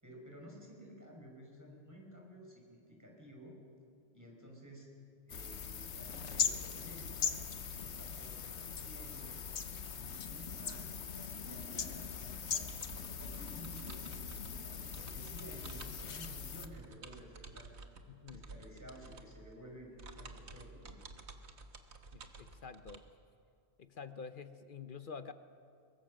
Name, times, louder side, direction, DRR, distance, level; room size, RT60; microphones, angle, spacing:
voice 1, 0.0-3.5 4.1-4.9 5.3-7.4 7.8-9.4 9.9-17.7 18.3-21.0, equal, 15° right, -1 dB, 5.4 m, -54 dB
sound 1, 5.3-16.7, left 6 dB, 90° left, 1.3 m, -40 dB
sound 2, 12.7-23.0, right 3 dB, 80° right, 1.6 m, -52 dB
voice 2, 18.1-18.5 22.1-23.1 23.8-25.3, left 5 dB, 55° left, 10 dB, 0.9 m, -48 dB
22.5 x 22.0 x 6.5 m, 2.4 s
omnidirectional pair, 1.1 m